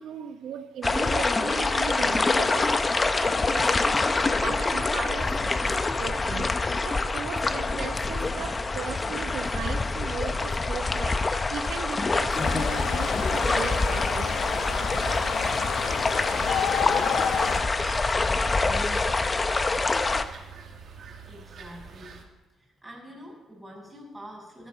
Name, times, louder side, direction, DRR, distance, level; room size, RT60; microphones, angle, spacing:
voice 1, 0.0-4.1 4.4-6.5 6.8-14.4, right 8 dB, 75° right, 1.0 m, -38 dB
sound 1, 0.8-20.2, left 3 dB, 25° left, 0.9 m, -26 dB
sound 2, 12.4-17.6, left 8 dB, 90° left, 1.4 m, -30 dB
sound 3, 14.4-22.2, right 4 dB, 55° right, 2.6 m, -44 dB
voice 2, 21.3-22.2 22.6-24.7, equal, 10° right, 6.3 m, -45 dB
13.5 x 13.5 x 5.8 m
cardioid pair, 90°, 0 cm